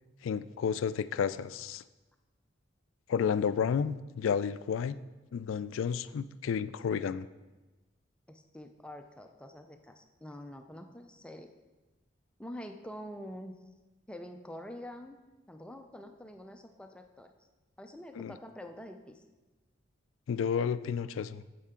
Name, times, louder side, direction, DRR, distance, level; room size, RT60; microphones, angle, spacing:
voice 1, 0.2-1.8 3.1-5.0 5.3-7.3 18.2-18.3 20.3-21.4, left 7 dB, 85° left, 15 dB, 0.3 m, -31 dB
voice 2, 8.3-11.5 12.4-13.5 14.1-15.2 15.5-17.3 17.8-19.2, equal, 5° left, 5 dB, 0.4 m, -46 dB
9.9 x 7.7 x 3.7 m, 1.2 s
head